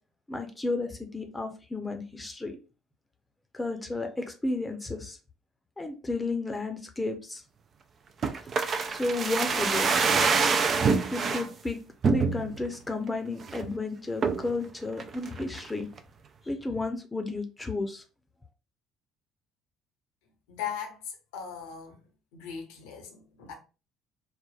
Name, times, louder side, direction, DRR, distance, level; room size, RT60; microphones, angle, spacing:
voice 1, 0.3-2.6 3.5-5.2 5.8-7.4 8.9-10.2 10.9-11.8 12.1-15.9 16.5-18.0, left 2 dB, 15° left, 0.6 m, -32 dB
sound 1, 8.2-11.5 12.0-12.7 13.1-13.2 13.4-13.7 14.2-14.5 15.0-15.7 16.0-16.1, right 5 dB, 45° right, 0.3 m, -26 dB
voice 2, 20.5-22.0 22.3-23.5, left 8 dB, 75° left, 0.7 m, -39 dB
3.3 x 2.1 x 2.3 m
hypercardioid pair, 55°, 0 cm